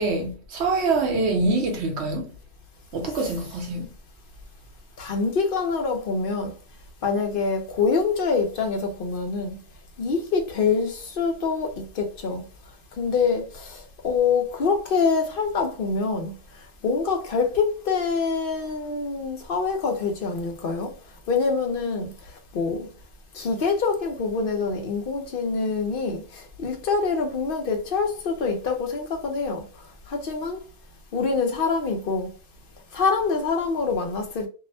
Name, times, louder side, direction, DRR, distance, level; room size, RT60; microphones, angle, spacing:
voice 1, 0.0-2.3 2.9-3.9, right 3 dB, 75° right, 1.1 m, -25 dB
voice 2, 5.0-6.5 7.0-9.6 10.0-12.4 13.0-16.3 16.8-20.9 21.3-22.1 22.5-22.9 23.3-29.6 30.1-30.6 31.1-32.3 32.9-34.5, left 4 dB, 55° left, 0.8 m, -25 dB
2.7 x 2.1 x 2.6 m
omnidirectional pair, 1.1 m